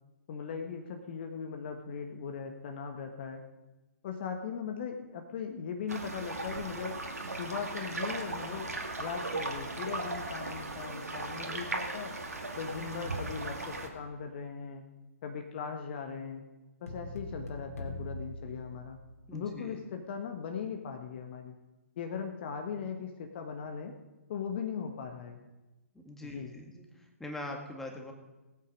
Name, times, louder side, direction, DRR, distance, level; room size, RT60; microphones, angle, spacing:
voice 1, 0.3-3.4 4.0-7.0 7.4-8.7 9.0-12.2 12.5-14.8 15.2-16.4 16.8-19.0 19.3-21.5 22.0-24.0 24.3-25.4 26.2-26.5, left 6 dB, 45° left, 4 dB, 1.3 m, -39 dB
sound 1, 5.9-13.9, right 2 dB, 85° right, 2.3 m, -37 dB
sound 2, 16.9-19.4, left 1 dB, 75° left, 2.9 m, -42 dB
voice 2, 19.3-19.8 26.0-26.8 27.2-28.1, left 1 dB, 5° left, 2 dB, 1.8 m, -42 dB
19.0 x 8.5 x 5.2 m, 1.1 s
figure-of-eight pair, 130°, 8 cm